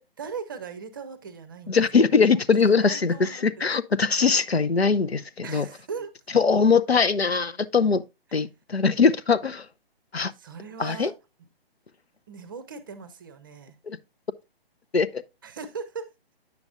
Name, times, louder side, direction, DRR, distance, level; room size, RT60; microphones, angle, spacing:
voice 1, 0.2-2.1 2.8-3.5 5.4-6.1 8.3-8.4 10.4-11.1 12.3-13.8 15.4-16.1, right 5 dB, 20° right, 0.6 m, -39 dB
voice 2, 1.7-5.7 6.3-8.0 8.3-9.7 10.1-10.3 10.8-11.1 13.9-14.0 14.9-15.2, left 5 dB, 85° left, 0.7 m, -21 dB
9.5 x 6.9 x 2.3 m
figure-of-eight pair, 140°, 30 cm